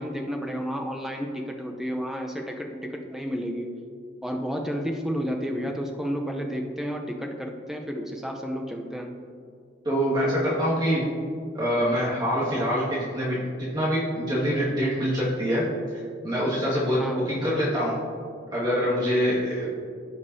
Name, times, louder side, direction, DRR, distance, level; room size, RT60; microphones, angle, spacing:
voice 1, 0.0-3.7 4.2-9.2 17.0-17.2, equal, 5° right, 2 dB, 0.6 m, -31 dB
voice 2, 9.8-11.1 11.5-15.7 16.2-18.0 18.5-19.7, equal, 20° right, -8 dB, 1.9 m, -25 dB
15.5 x 5.3 x 2.7 m, 2.3 s
head